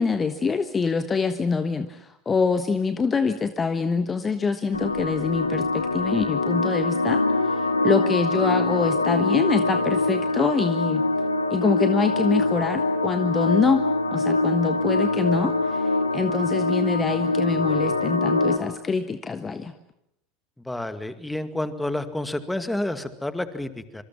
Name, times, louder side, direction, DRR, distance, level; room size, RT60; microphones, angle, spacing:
voice 1, 0.0-11.0 11.5-13.8 14.1-19.7, left 5 dB, 25° left, 10 dB, 1.3 m, -25 dB
sound 1, 4.7-18.6, left 2 dB, 85° left, 1.8 m, -24 dB
voice 2, 20.7-24.0, left 1 dB, 5° left, 11 dB, 2.1 m, -29 dB
26.0 x 24.5 x 7.4 m, 0.78 s
figure-of-eight pair, 75°, 0 cm